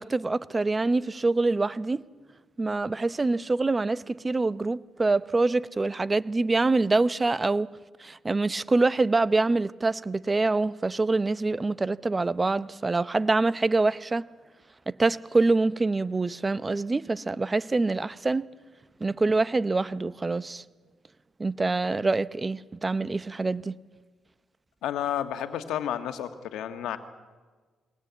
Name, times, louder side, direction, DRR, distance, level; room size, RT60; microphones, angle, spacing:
voice 1, 0.0-2.0 2.6-7.7 8.0-14.3 14.9-18.5 19.0-20.6 21.4-23.7, right 3 dB, 25° right, 0.7 m, -25 dB
voice 2, 24.8-27.0, left 10 dB, 85° left, 1.6 m, -31 dB
22.5 x 18.5 x 8.3 m
cardioid pair, 90°, 0 cm